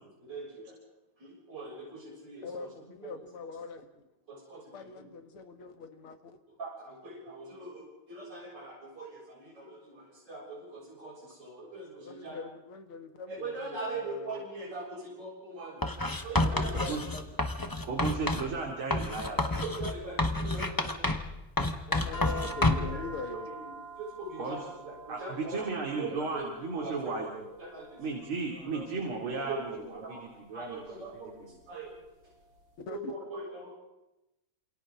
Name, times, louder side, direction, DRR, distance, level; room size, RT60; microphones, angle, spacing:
voice 1, 0.2-0.8 1.2-2.7 3.0-3.1 4.3-5.1 5.6-5.7 6.6-12.4 13.3-15.9 16.2-17.0 18.1-18.2 19.4-21.2 22.6-28.8 29.3-30.3 30.5-31.4 31.7-31.9 32.9-33.7, right 2 dB, 50° right, -6 dB, 7.8 m, -42 dB
voice 2, 2.4-4.0 4.7-6.4 12.0-14.5 16.4-17.4 21.9-23.5 32.9-33.1, left 5 dB, 75° left, 7 dB, 2.5 m, -42 dB
Writing, 15.8-18.5 18.9-21.3 21.6-23.0, left 2 dB, 25° left, 0.5 m, -29 dB
voice 3, 17.9-19.6 24.4-24.6 25.1-27.3 28.0-29.7 30.1-30.8, right 4 dB, 70° right, -1 dB, 3.7 m, -35 dB
sound 1, 22.1-32.6, right 3 dB, 60° left, 4.0 m, -48 dB
28.5 x 28.0 x 3.8 m, 0.94 s
omnidirectional pair, 2.4 m